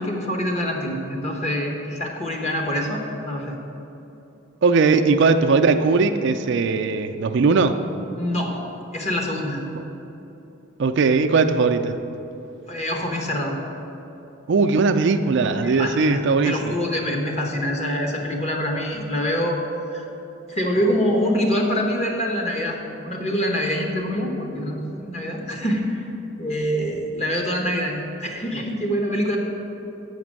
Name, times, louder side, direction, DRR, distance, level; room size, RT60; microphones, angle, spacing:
voice 1, 0.0-3.6 8.1-8.6 8.9-9.6 12.7-13.6 15.6-19.6 19.9-20.1 20.5-26.1 26.4-29.4, equal, 35° left, 1 dB, 1.1 m, -25 dB
voice 2, 4.6-7.8 10.8-12.0 14.5-16.8, right 4 dB, 60° right, 7 dB, 0.4 m, -19 dB
7.1 x 5.9 x 7.5 m, 2.9 s
head